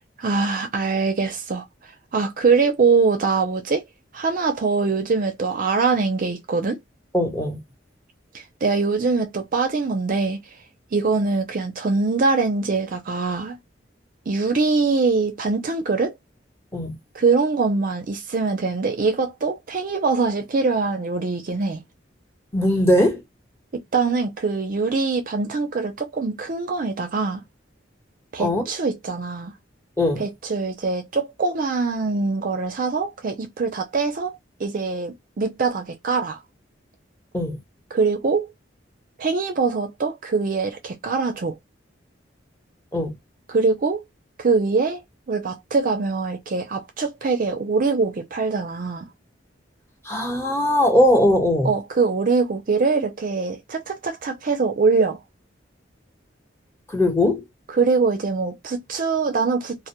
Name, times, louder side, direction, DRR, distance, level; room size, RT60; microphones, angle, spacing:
voice 1, 0.2-1.7 2.1-3.8 4.1-6.8 8.3-10.4 10.9-13.6 14.3-16.1 17.1-21.8 23.7-27.4 28.3-29.5 30.2-36.4 37.9-38.5 39.2-41.6 43.5-44.0 44.4-45.0 45.3-49.1 51.6-55.2 57.7-59.9, right 4 dB, 45° right, 0.5 m, -23 dB
voice 2, 7.1-7.6 16.7-17.0 22.5-23.2 28.4-28.7 30.0-30.2 37.3-37.6 42.9-43.1 50.0-51.7 56.9-57.4, left 1 dB, 15° left, 1.0 m, -19 dB
2.1 x 2.1 x 2.8 m
head